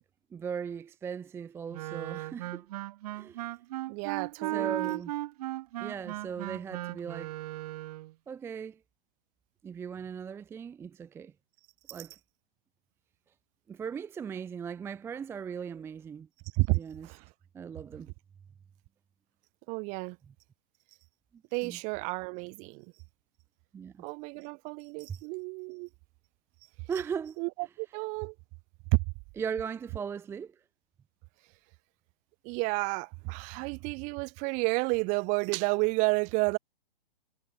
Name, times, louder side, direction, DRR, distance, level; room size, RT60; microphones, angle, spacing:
voice 1, 0.3-2.7 3.1-3.5 4.4-5.1 5.8-7.3 8.3-8.8 9.6-11.3 11.9-12.2 13.7-16.3 16.7-17.1 17.5-18.1 21.6-21.8 23.7-24.0 26.9-27.4 29.4-30.6, right 7 dB, 10° right, 0.7 m, -38 dB
Wind instrument woodwind instrument, 1.7-8.1, right 16 dB, 40° right, 2.0 m, -36 dB
voice 2, 3.9-5.0 16.5-17.2 19.7-20.2 21.5-22.9 24.0-25.9 27.4-27.5 27.8-28.3 28.9-29.0 32.4-36.6, right 30 dB, 25° right, 1.2 m, -31 dB
hypercardioid pair, 140°, 29 cm